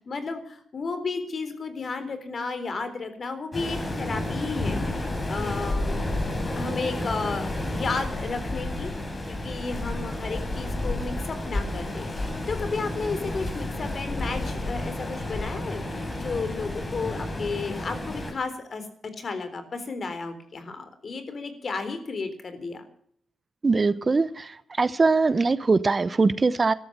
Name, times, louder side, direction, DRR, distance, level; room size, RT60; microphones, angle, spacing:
voice 1, 0.1-5.9 6.6-8.9 9.3-18.9 19.2-22.8, left 4 dB, 50° left, 3.9 m, -33 dB
Waves surf, 3.5-18.3, left 1 dB, 30° left, 5.1 m, -31 dB
voice 2, 23.6-24.5 24.8-26.7, right 4 dB, 35° right, 0.9 m, -21 dB
13.5 x 13.5 x 7.4 m
supercardioid pair, 60°, 0 cm